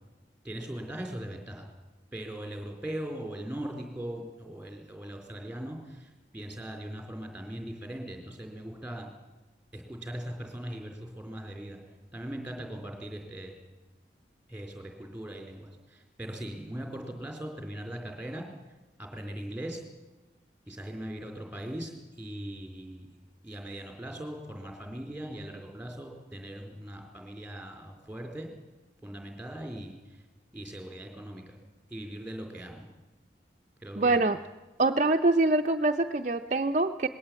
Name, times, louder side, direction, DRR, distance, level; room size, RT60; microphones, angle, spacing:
voice 1, 0.4-1.7 2.1-9.1 9.7-11.8 12.1-13.5 14.5-18.5 19.0-19.8 20.7-23.1 23.4-28.5 29.0-30.2 30.5-31.6 31.9-32.9 33.8-34.2, right 1 dB, 5° right, 3 dB, 4.0 m, -40 dB
voice 2, 34.0-34.4 34.8-37.1, right 2 dB, 40° right, 4 dB, 0.6 m, -24 dB
20.0 x 17.0 x 8.8 m, 1.1 s
head